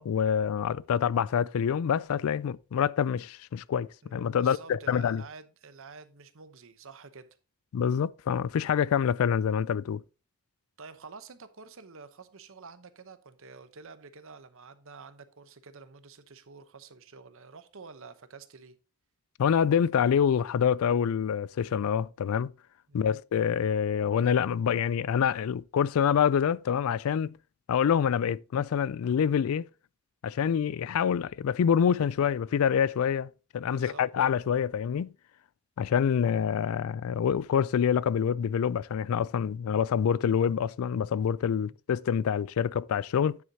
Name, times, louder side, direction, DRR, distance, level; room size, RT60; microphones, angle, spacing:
voice 1, 0.0-5.2 7.7-10.0 19.4-22.5 22.9-27.4 27.7-29.6 30.2-35.1 35.8-43.4, left 7 dB, 65° left, 0.3 m, -26 dB
voice 2, 4.0-7.3 10.8-18.8 22.9-23.1 33.6-34.1 39.5-39.6 41.6-41.8, right 4 dB, 60° right, 0.9 m, -49 dB
9.5 x 7.8 x 2.8 m
head